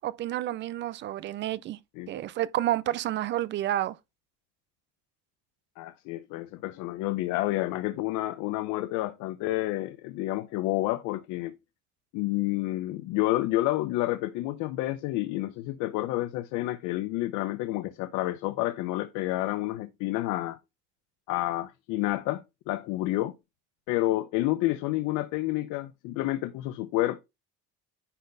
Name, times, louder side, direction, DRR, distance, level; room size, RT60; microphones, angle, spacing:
voice 1, 0.0-1.8 2.1-4.0, right 13 dB, 40° right, 0.5 m, -30 dB
voice 2, 5.8-11.6 12.1-20.6 21.3-23.3 23.9-27.2, left 17 dB, 90° left, 0.7 m, -29 dB
10.0 x 4.1 x 3.9 m
cardioid pair, 175°, 29 cm